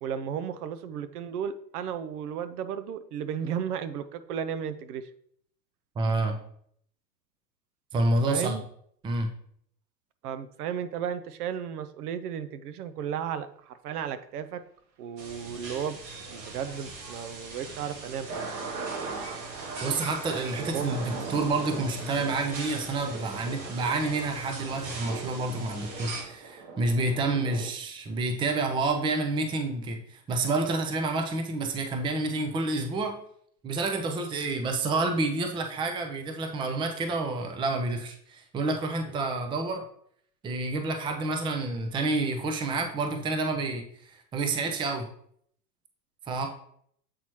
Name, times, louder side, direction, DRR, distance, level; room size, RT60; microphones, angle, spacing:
voice 1, 0.0-5.1 8.3-8.6 10.2-14.6 15.0-16.0 16.3-18.4 20.6-21.0, right 8 dB, 65° right, 12 dB, 0.6 m, -34 dB
voice 2, 6.0-6.4 7.9-8.6 9.0-9.3 19.8-33.1 33.6-39.8 40.4-45.1 46.3-46.5, right 3 dB, 10° right, 5 dB, 0.5 m, -29 dB
sound 1, 15.2-26.2, right 3 dB, 85° right, 1.6 m, -41 dB
sound 2, 17.5-27.7, right 4 dB, 35° right, 1.0 m, -40 dB
7.7 x 4.1 x 3.0 m, 0.65 s
hypercardioid pair, 95°, 50 cm